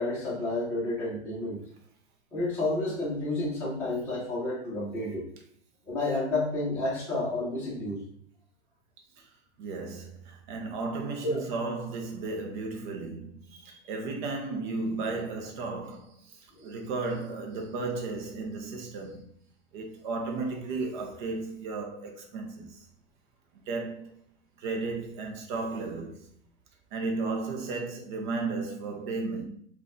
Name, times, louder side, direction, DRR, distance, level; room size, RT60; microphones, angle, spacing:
voice 1, 0.0-1.6 2.3-5.3 5.9-8.0 11.2-11.4 16.5-16.7, left 2 dB, 5° left, 0.9 m, -30 dB
voice 2, 9.6-19.2 19.7-22.9 23.7-24.1 24.6-26.3 26.9-29.4, right 3 dB, 45° right, 0.7 m, -34 dB
3.7 x 2.4 x 2.6 m
supercardioid pair, 160°, 36 cm